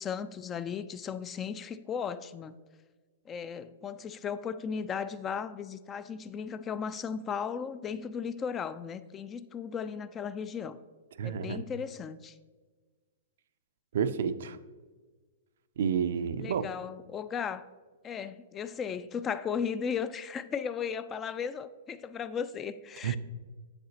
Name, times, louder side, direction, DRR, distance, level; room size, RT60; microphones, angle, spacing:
voice 1, 0.0-2.6 3.3-10.8 11.2-12.4 16.4-17.7 18.0-23.2, left 7 dB, 25° left, 14 dB, 0.3 m, -36 dB
voice 2, 11.2-11.6 13.9-14.6 15.8-16.7 23.0-23.2, right 7 dB, 65° right, 12 dB, 0.4 m, -30 dB
7.7 x 6.6 x 2.8 m, 1.4 s
hypercardioid pair, 115°, 0 cm